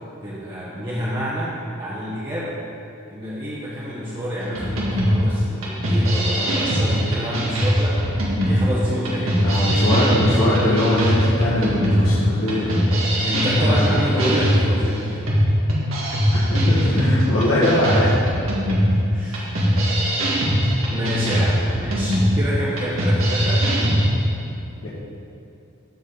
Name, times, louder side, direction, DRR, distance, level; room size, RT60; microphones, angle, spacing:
voice 1, 0.2-2.6 3.1-8.0 8.4-9.4 13.2-15.2 16.0-16.1 16.8-16.9 19.1-19.6 20.9-23.7, equal, 25° right, -9 dB, 1.3 m, -28 dB
sound 1, 4.5-24.1, equal, 85° right, 2.0 m, -20 dB
voice 2, 9.4-12.7 13.5-14.3 16.3-18.2 24.8-24.9, left 1 dB, 75° left, -10 dB, 1.9 m, -21 dB
14.5 x 5.0 x 4.0 m, 2.7 s
head